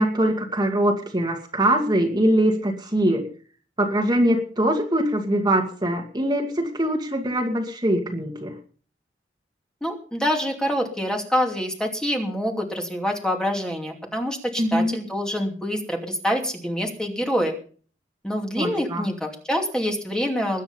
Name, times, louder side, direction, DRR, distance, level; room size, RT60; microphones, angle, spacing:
voice 1, 0.0-3.3 3.8-8.5 14.6-15.0 18.6-19.1, right 1 dB, 25° right, 2 dB, 2.3 m, -22 dB
voice 2, 9.8-17.5 18.2-20.6, equal, 5° left, 2 dB, 2.6 m, -26 dB
21.5 x 9.1 x 5.6 m, 0.42 s
head